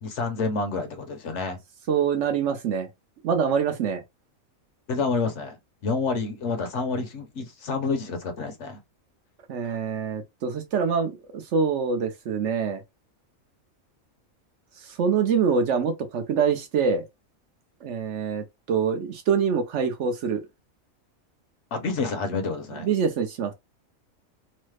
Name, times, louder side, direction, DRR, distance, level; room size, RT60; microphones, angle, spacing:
voice 1, 0.0-1.6 4.9-5.6 5.8-8.8 21.7-22.9, left 4 dB, 65° left, 0.9 m, -28 dB
voice 2, 1.9-2.9 3.2-4.0 9.5-12.8 14.8-17.0 17.8-20.4 22.8-23.5, right 6 dB, 65° right, 0.8 m, -25 dB
3.1 x 2.0 x 3.2 m
omnidirectional pair, 1.5 m